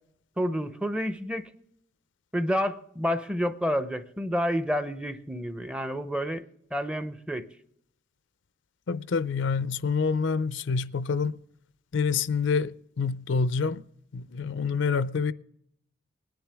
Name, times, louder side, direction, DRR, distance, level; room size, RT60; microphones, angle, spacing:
voice 1, 0.4-1.5 2.3-6.4 6.7-7.5, equal, 5° right, 0.6 m, -29 dB
voice 2, 8.9-11.4 11.9-13.8 14.1-15.3, left 5 dB, 70° left, 0.5 m, -27 dB
20.0 x 10.5 x 3.4 m
head